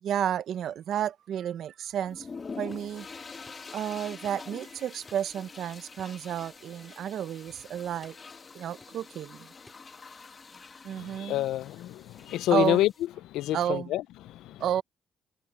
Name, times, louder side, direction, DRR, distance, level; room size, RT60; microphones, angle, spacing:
voice 1, 0.0-2.3 2.6-3.1 3.7-8.2 8.5-9.5 10.8-11.4 12.5-12.8 13.5-14.0 14.6-14.8, right 10 dB, 70° right, 0.8 m, -31 dB
sound 1, 2.1-13.1, left 4 dB, 35° left, 2.2 m, -46 dB
sound 2, 2.7-3.0 3.5-3.7 4.2-4.7 5.1-5.4 6.0-6.7 7.1-7.3 8.0-8.3 8.8-9.2 9.7-10.0 10.5-10.8, left 2 dB, 15° left, 5.9 m, -58 dB
voice 2, 11.0-12.9 13.3-14.0 14.3-14.6, left 14 dB, 90° left, 0.5 m, -28 dB
cardioid pair, 90°, 0 cm